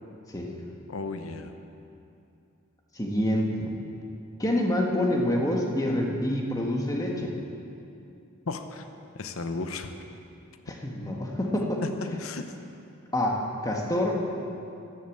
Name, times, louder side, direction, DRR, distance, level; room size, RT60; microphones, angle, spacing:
voice 1, 0.9-1.6 8.5-8.8 9.1-9.9 11.8-12.5, left 3 dB, 85° left, 8 dB, 0.8 m, -34 dB
voice 2, 2.9-3.7 4.4-7.3 10.7-11.8 13.1-14.2, left 1 dB, 15° left, 0 dB, 1.5 m, -27 dB
11.0 x 11.0 x 7.4 m, 2.7 s
head